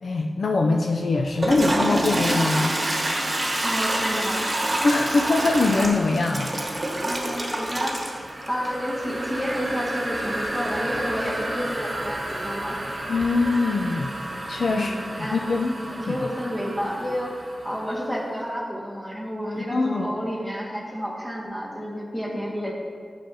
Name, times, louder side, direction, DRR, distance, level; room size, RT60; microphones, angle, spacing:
voice 1, 0.0-2.7 4.8-6.5 6.9-7.0 13.1-14.1 14.5-14.9 15.3-15.7 16.1-16.2 19.6-20.1, left 3 dB, 75° left, 2 dB, 0.4 m, -23 dB
Toilet flush, 1.2-18.0, right 1 dB, 40° right, 1.3 m, -28 dB
voice 2, 3.6-4.5 7.0-8.1 8.5-12.8 14.7-15.4 15.8-22.7, equal, 15° left, -4 dB, 1.6 m, -30 dB
9.2 x 6.5 x 2.7 m, 2.1 s
cardioid pair, 60°, 0 cm